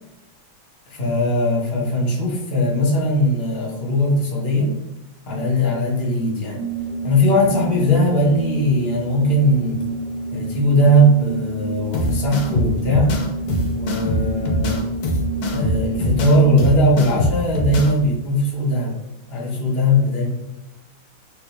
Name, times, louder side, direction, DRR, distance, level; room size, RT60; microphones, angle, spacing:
voice 1, 0.9-4.7 5.3-6.6 7.0-9.8 10.3-13.2 13.7-14.8 15.5-19.0 19.3-20.3, equal, 50° left, -3 dB, 0.8 m, -19 dB
Organ, 6.5-16.8, right 2 dB, 30° right, 0.4 m, -29 dB
sound 1, 11.9-17.9, left 1 dB, 80° left, 1.3 m, -23 dB
3.6 x 2.3 x 3.0 m, 1.0 s
omnidirectional pair, 2.2 m